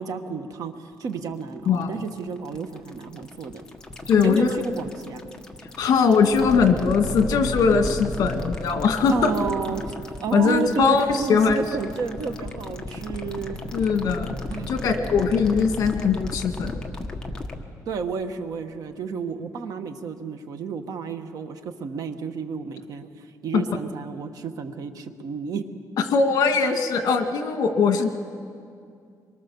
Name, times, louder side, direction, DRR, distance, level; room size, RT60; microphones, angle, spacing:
voice 1, 0.0-3.6 4.2-5.2 9.1-9.9 10.2-13.6 14.5-14.8 17.9-25.6, right 5 dB, 60° right, 8 dB, 1.4 m, -31 dB
sound 1, 0.9-17.6, left 2 dB, 10° left, 1.4 m, -35 dB
voice 2, 4.1-4.6 5.8-9.3 10.3-11.0 11.3-11.6 13.7-14.4 14.7-16.8 23.5-23.6 26.1-28.1, left 5 dB, 60° left, 6 dB, 1.9 m, -20 dB
24.5 x 23.5 x 7.1 m, 2.4 s
cardioid pair, 160°, 7 cm